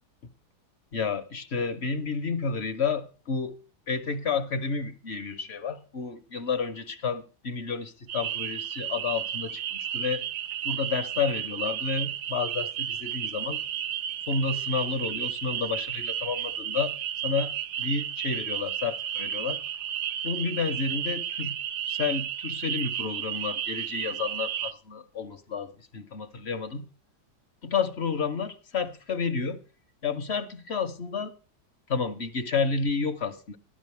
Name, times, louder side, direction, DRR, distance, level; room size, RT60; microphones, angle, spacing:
voice 1, 0.9-3.6 3.9-10.2 10.6-13.6 14.2-16.9 17.2-17.5 17.8-19.6 20.2-21.6 21.8-26.9 27.6-29.6 30.0-31.3 31.9-33.6, left 5 dB, 50° left, 0.9 m, -30 dB
sound 1, 8.1-24.7, right 10 dB, 70° right, 1.3 m, -33 dB
13.0 x 12.5 x 3.2 m
omnidirectional pair, 1.8 m